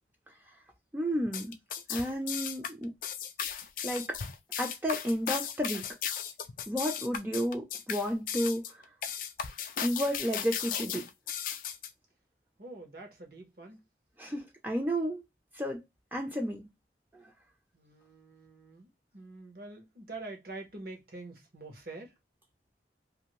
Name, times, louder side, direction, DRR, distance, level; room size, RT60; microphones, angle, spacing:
voice 1, 0.9-1.6 1.9-2.9 3.8-4.2 4.6-5.8 6.7-8.8 9.8-11.1 14.2-15.2 15.5-15.8 16.1-16.7 17.1-17.2, equal, 10° right, 0.5 m, -32 dB
sound 1, 1.3-11.9, left 8 dB, 50° left, 0.3 m, -36 dB
voice 2, 12.6-13.8 17.7-18.9 19.1-22.1, right 2 dB, 55° right, 1.0 m, -45 dB
2.6 x 2.6 x 3.0 m
head